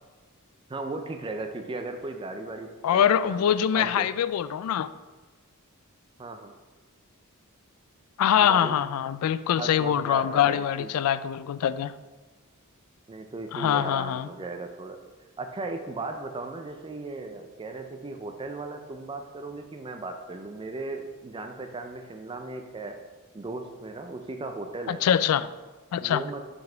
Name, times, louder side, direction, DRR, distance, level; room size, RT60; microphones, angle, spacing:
voice 1, 0.7-4.1 6.2-6.5 8.4-8.7 9.5-10.9 13.1-15.0 15.4-23.0 23.3-25.0 26.0-26.4, right 3 dB, 20° right, 6 dB, 0.4 m, -36 dB
voice 2, 2.8-4.9 8.2-11.9 13.5-14.3 24.9-25.5 25.9-26.2, left 9 dB, 70° left, 17 dB, 0.3 m, -24 dB
5.8 x 5.4 x 4.4 m, 1.3 s
head